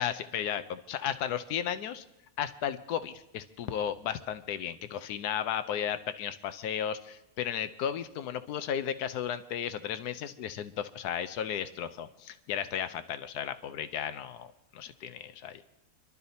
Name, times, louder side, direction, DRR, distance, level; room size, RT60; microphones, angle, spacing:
voice 1, 0.0-2.0 2.4-15.6, left 9 dB, 80° left, 12 dB, 1.3 m, -34 dB
28.0 x 12.0 x 2.8 m, 0.86 s
omnidirectional pair, 1.7 m